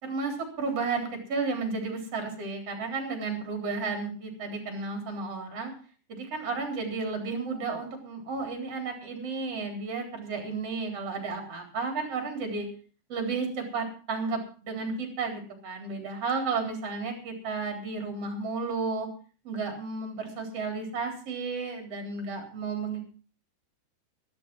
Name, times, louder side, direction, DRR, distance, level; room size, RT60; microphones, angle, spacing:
voice 1, 0.0-5.7 6.1-12.7 13.1-19.1 19.4-23.0, right 4 dB, 35° right, 4 dB, 4.2 m, -33 dB
13.5 x 12.0 x 6.0 m, 0.40 s
omnidirectional pair, 5.0 m